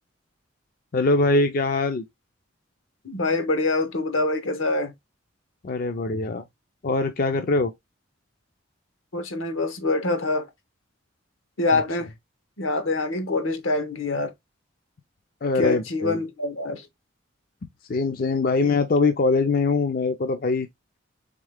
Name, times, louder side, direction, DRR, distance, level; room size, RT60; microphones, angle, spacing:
voice 1, 0.9-2.1 5.6-6.4 6.8-7.7 11.7-11.8 15.4-16.2 17.9-20.7, left 3 dB, 45° left, 0.4 m, -22 dB
voice 2, 3.0-4.9 9.1-10.5 11.6-12.1 12.6-14.3 15.5-16.9, left 2 dB, 80° left, 0.9 m, -25 dB
3.6 x 3.5 x 3.4 m
head